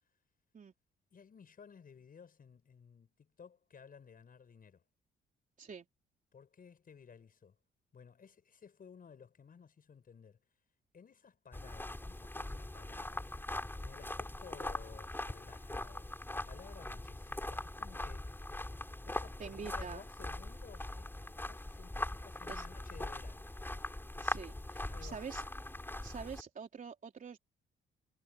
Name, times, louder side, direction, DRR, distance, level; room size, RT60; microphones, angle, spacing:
voice 1, 1.1-4.8 6.3-7.6 7.9-10.4 10.9-13.3 13.8-18.4 19.1-23.5 24.9-25.3, left 6 dB, 45° left, 6.9 m, -56 dB
sound 1, 11.5-26.4, left 1 dB, 10° left, 5.5 m, -41 dB
voice 2, 19.4-20.0 22.5-22.7 24.2-25.4 26.0-27.4, right 6 dB, 40° right, 3.5 m, -46 dB
cardioid pair, 90°, 20 cm